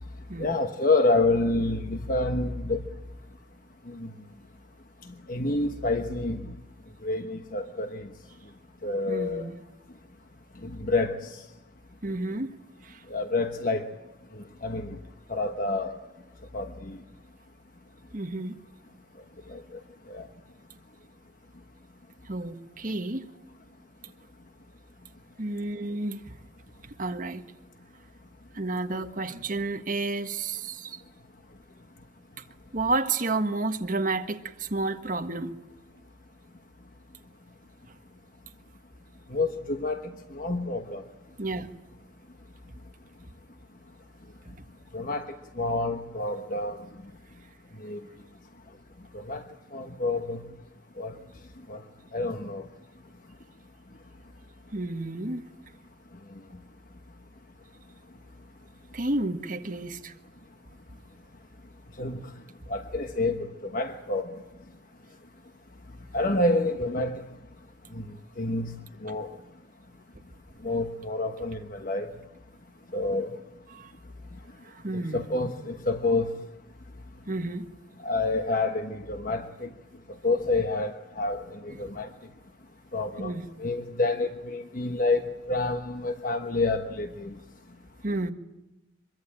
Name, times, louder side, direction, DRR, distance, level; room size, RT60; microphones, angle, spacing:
voice 1, 0.4-2.8 3.9-4.1 5.3-6.4 7.0-8.1 8.8-9.5 10.6-11.3 13.1-13.9 14.6-14.9 15.3-16.0 16.5-17.0 19.5-19.6 20.1-20.2 39.3-40.0 40.3-41.0 44.9-45.3 45.6-46.8 47.8-48.0 49.1-49.4 49.7-50.4 51.0-51.1 51.7-51.8 52.1-52.6 62.0-62.2 62.7-63.4 63.7-64.2 66.1-67.2 67.9-68.1 68.4-68.7 69.0-69.3 70.6-72.1 72.9-73.4 75.1-76.3 78.0-79.7 80.2-82.1 82.9-85.2 85.5-87.3, left 2 dB, 45° left, 1.2 m, -28 dB
voice 2, 9.1-9.6 12.0-12.5 12.8-13.0 18.1-18.6 22.2-23.2 25.4-26.3 26.8-27.4 28.5-31.0 32.7-35.5 41.4-41.7 44.6-44.7 54.7-55.4 58.9-60.1 69.1-69.2 73.7-73.9 74.6-75.3 77.3-77.7 81.8-82.0 83.2-83.5 88.0-88.3, right 2 dB, 45° right, 1.6 m, -31 dB
24.5 x 22.5 x 8.9 m
head